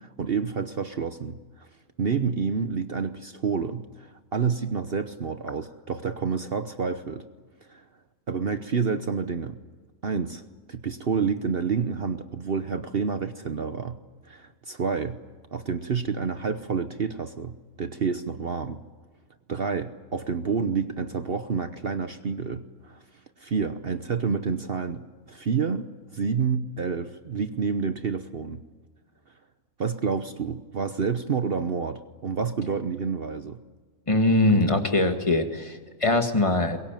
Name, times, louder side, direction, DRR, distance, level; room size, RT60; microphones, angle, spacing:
voice 1, 0.0-1.7 2.0-7.2 7.7-7.8 8.3-9.6 10.0-10.4 10.7-14.0 14.2-15.2 15.5-18.8 19.5-23.0 23.4-25.9 26.1-28.6 29.8-33.6, right 5 dB, 45° right, 10 dB, 1.0 m, -29 dB
voice 2, 34.1-36.8, left 2 dB, 20° left, 5 dB, 2.0 m, -22 dB
22.5 x 22.0 x 9.1 m, 1.4 s
omnidirectional pair, 1.5 m